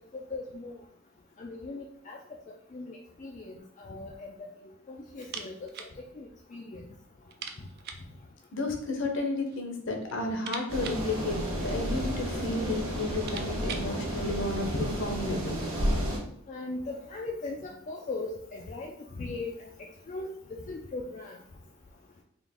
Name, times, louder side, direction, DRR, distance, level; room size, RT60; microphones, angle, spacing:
voice 1, 0.1-0.7 1.4-2.2 2.7-4.5 4.9-5.7 6.0-6.8 16.5-19.7 20.1-20.3 20.7-21.4, left 3 dB, 35° left, -1 dB, 0.3 m, -39 dB
sound 1, 5.2-6.0 6.2-6.3 6.7-6.8 7.3-8.1 9.1-9.7 10.0-12.0 12.7-12.8 13.0-14.0, right 6 dB, 45° right, 0.4 m, -43 dB
voice 2, 8.5-15.6, left 2 dB, 55° left, 3 dB, 0.8 m, -32 dB
sound 2, 10.7-16.2, equal, 65° right, 1.3 m, -32 dB
3.9 x 2.4 x 3.5 m, 0.67 s
head